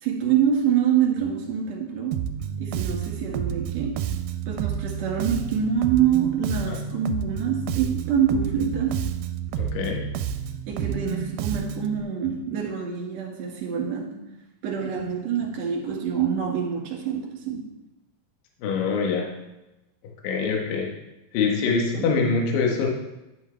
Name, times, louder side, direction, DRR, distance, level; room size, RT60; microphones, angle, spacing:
voice 1, 0.0-2.3 2.6-4.0 4.5-9.1 10.7-14.2 14.6-17.7 21.9-22.1, right 8 dB, 50° right, -1 dB, 2.7 m, -26 dB
Bass guitar, 2.1-12.0, right 9 dB, 85° right, 2.5 m, -30 dB
voice 2, 9.6-10.0 18.6-19.3 20.2-20.9 21.3-22.9, left 5 dB, 65° left, 0 dB, 2.8 m, -24 dB
11.0 x 7.5 x 3.4 m, 0.97 s
omnidirectional pair, 4.7 m